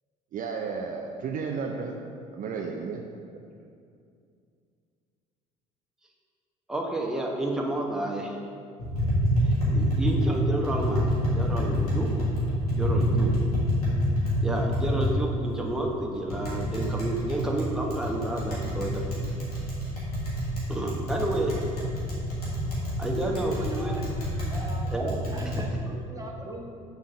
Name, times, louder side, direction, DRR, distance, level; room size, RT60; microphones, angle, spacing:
voice 1, 0.3-1.9 2.3-3.0, right 5 dB, 45° right, 2 dB, 0.6 m, -32 dB
voice 2, 6.7-8.4 9.7-12.3 12.7-13.3 14.4-19.1 20.7-21.6 23.0-24.0 24.9-25.2, right 1 dB, 5° right, -1 dB, 1.0 m, -30 dB
Tap, 8.8-25.6, equal, 90° left, 1.7 m, -27 dB
voice 3, 23.6-24.1 24.5-24.9 25.3-26.7, right 1 dB, 20° right, -1 dB, 1.4 m, -41 dB
6.2 x 4.0 x 5.7 m, 2.4 s
hypercardioid pair, 55°, 19 cm